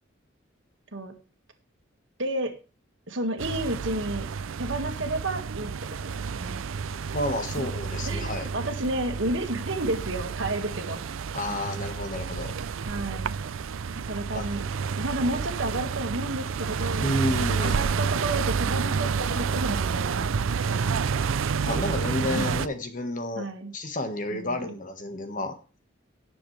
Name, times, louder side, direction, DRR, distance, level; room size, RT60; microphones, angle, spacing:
voice 1, 2.2-2.5 3.1-4.3 4.6-6.6 7.5-7.7 8.1-11.1 11.5-11.6 12.9-13.3 14.1-14.6 15.0-17.1 17.6-21.0 22.2-22.6 23.4-23.7 24.3-24.8, right 1 dB, 65° right, 6 dB, 1.9 m, -31 dB
sound 1, 3.4-22.7, right 5 dB, 85° right, 0.5 m, -29 dB
voice 2, 6.9-8.5 11.3-12.5 14.3-14.5 17.0-17.8 21.6-25.6, left 1 dB, 40° left, 7 dB, 1.5 m, -31 dB
18.0 x 7.2 x 3.3 m, 0.35 s
head